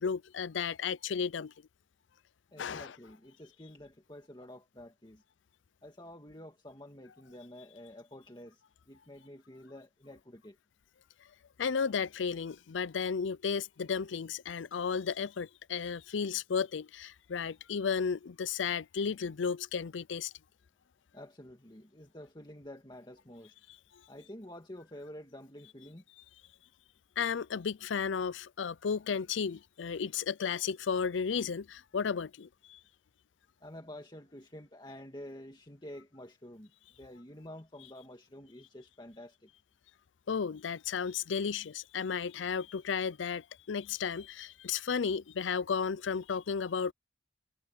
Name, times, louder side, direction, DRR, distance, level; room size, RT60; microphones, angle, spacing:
voice 1, 0.0-1.5 2.6-2.9 11.6-20.3 27.2-32.8 40.3-46.9, left 6 dB, 85° left, 0.5 m, -33 dB
voice 2, 2.5-5.2 5.8-10.6 21.1-23.5 24.1-26.0 33.6-36.7 37.0-39.5, left 1 dB, 25° left, 2.0 m, -49 dB
head